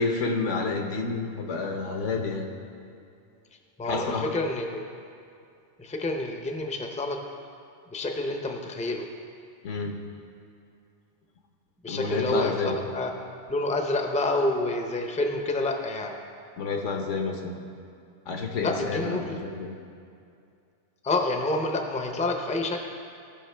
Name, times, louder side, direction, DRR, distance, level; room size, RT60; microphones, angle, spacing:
voice 1, 0.0-2.5 3.8-4.3 9.6-10.0 11.9-12.7 16.6-17.6 18.3-19.7, left 4 dB, 85° left, 3 dB, 1.3 m, -29 dB
voice 2, 3.8-4.8 5.8-7.2 7.9-9.1 11.8-13.1 13.5-16.2 18.6-19.4 21.0-22.8, left 2 dB, 10° left, 3 dB, 0.4 m, -28 dB
16.0 x 5.6 x 3.3 m, 2.4 s
omnidirectional pair, 1.2 m